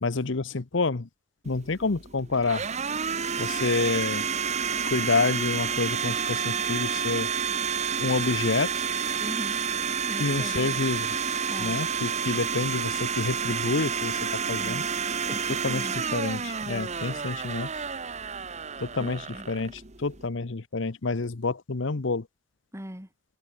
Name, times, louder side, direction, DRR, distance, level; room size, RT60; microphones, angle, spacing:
voice 1, 0.0-1.1 1.4-2.7 3.4-4.3 4.8-7.3 8.0-8.8 10.2-11.2 11.6-14.2 14.5-14.8 15.6-17.7 18.8-22.3, left 3 dB, 65° left, 0.9 m, -28 dB
Domestic sounds home sounds, 1.5-20.3, right 6 dB, 35° right, 1.3 m, -30 dB
voice 2, 9.2-9.6 10.1-10.8 11.5-11.8 14.6-14.9 15.3-16.0 19.0-19.5 22.7-23.1, equal, 15° right, 3.7 m, -39 dB
head